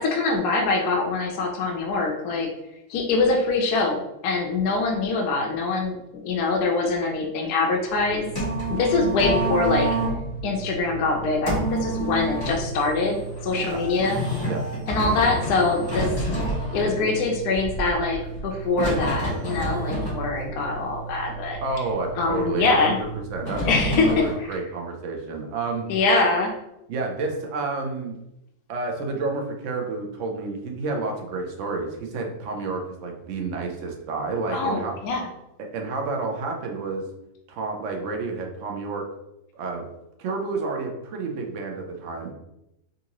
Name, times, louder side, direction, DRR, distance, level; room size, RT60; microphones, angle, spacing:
voice 1, 0.0-2.5 2.9-8.3 8.7-9.9 10.4-14.2 14.9-16.1 16.7-21.6 22.1-23.0 23.7-24.6 25.9-26.5 34.5-35.3, left 3 dB, 75° left, 1 dB, 1.1 m, -24 dB
sound 1, 7.9-24.3, right 1 dB, 15° left, 1.0 m, -29 dB
voice 2, 21.6-25.9 26.9-28.2 28.7-34.9 35.7-37.0 37.5-39.1 39.5-39.9 40.2-42.3, right 3 dB, 65° right, 2 dB, 0.8 m, -30 dB
3.7 x 2.5 x 2.9 m, 0.87 s
omnidirectional pair, 1.7 m